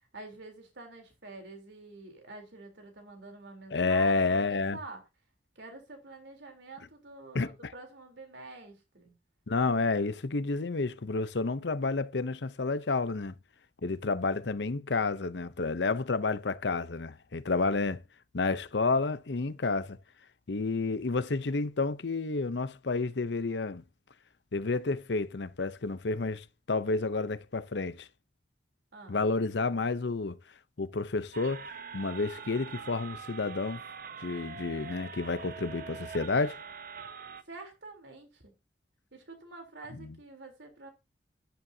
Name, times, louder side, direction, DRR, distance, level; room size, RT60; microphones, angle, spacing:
voice 1, 0.1-5.0 5.6-9.1 28.9-29.2 37.5-38.5 39.1-40.9, right 3 dB, 75° right, 3.6 m, -47 dB
voice 2, 3.7-4.8 7.3-7.7 9.5-13.4 13.8-18.0 18.3-20.0 20.5-23.8 24.5-28.1 29.1-30.4 30.8-33.8 34.2-36.6 40.0-40.1, left 3 dB, 70° left, 0.7 m, -30 dB
sound 1, 31.3-37.4, right 6 dB, 55° right, 0.8 m, -44 dB
12.5 x 10.5 x 2.8 m
head